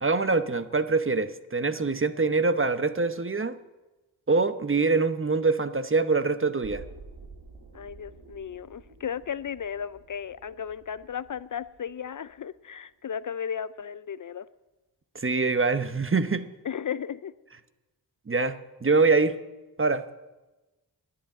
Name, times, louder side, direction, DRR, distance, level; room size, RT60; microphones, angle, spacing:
voice 1, 0.0-3.5 4.3-6.8 15.1-16.5 18.3-19.4 19.8-20.0, right 4 dB, 30° right, 12 dB, 0.9 m, -24 dB
sound 1, 6.6-12.6 12.9-13.0, right 4 dB, 65° right, 2.1 m, -50 dB
voice 2, 7.7-14.5 16.6-17.3, left 8 dB, 50° left, 17 dB, 0.5 m, -35 dB
11.0 x 10.5 x 9.4 m, 1.1 s
cardioid pair, 50°, 40 cm